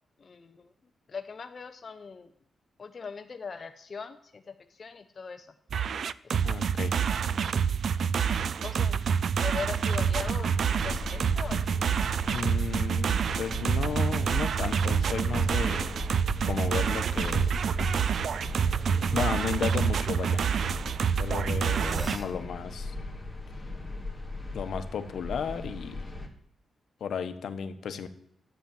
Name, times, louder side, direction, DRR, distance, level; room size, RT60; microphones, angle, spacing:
voice 1, 0.2-0.7 1.1-2.3 2.8-5.5 6.2-6.6 8.6-9.0 9.4-11.7, left 5 dB, 45° left, 6 dB, 0.7 m, -40 dB
sound 1, 5.7-22.2, right 7 dB, 65° right, 0.4 m, -27 dB
voice 2, 6.4-7.0 12.3-15.9 16.4-17.6 19.1-20.4 21.2-22.9 24.5-26.0 27.0-28.1, left 6 dB, 75° left, 9 dB, 1.2 m, -34 dB
sound 2, 9.9-26.3, left 2 dB, 10° left, 2.5 m, -38 dB
sound 3, 17.1-17.6 18.4-20.5 21.5-22.4, right 1 dB, 20° right, 1.5 m, -44 dB
12.5 x 8.8 x 7.3 m, 0.71 s
cardioid pair, 95°, 0 cm